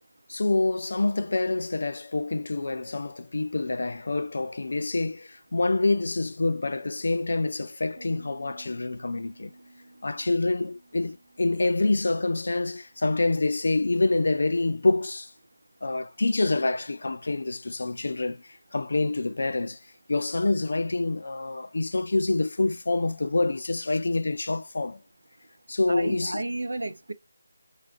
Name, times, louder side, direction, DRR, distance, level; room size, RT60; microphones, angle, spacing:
voice 1, 0.3-9.5 10.0-15.3 15.8-19.8 20.1-25.0 25.7-26.4, left 2 dB, 65° left, 0.3 m, -26 dB
Piano, 8.0-13.6, right 2 dB, 45° right, 0.9 m, -54 dB
voice 2, 25.9-27.1, right 2 dB, 90° right, 0.5 m, -32 dB
2.3 x 2.1 x 2.5 m
figure-of-eight pair, 175°, 0 cm